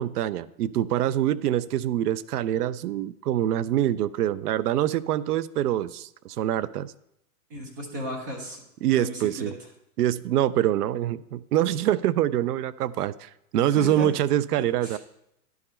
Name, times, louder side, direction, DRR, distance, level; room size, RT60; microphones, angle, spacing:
voice 1, 0.0-6.9 8.8-9.5 10.0-15.0, right 12 dB, 75° right, 18 dB, 0.5 m, -25 dB
voice 2, 7.5-8.6 8.9-9.3 13.7-14.1 14.8-15.0, equal, 15° right, 1 dB, 0.3 m, -34 dB
11.0 x 4.7 x 4.3 m, 0.81 s
hypercardioid pair, 140°, 46 cm